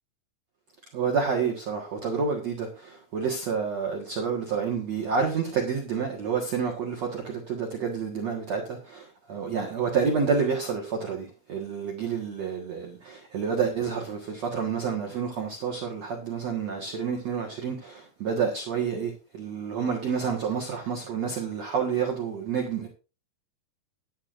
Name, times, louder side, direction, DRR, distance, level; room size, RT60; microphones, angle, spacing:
voice 1, 0.9-9.0 9.3-22.9, right 6 dB, 55° right, 2.0 m, -29 dB
15.0 x 11.0 x 2.6 m
omnidirectional pair, 5.3 m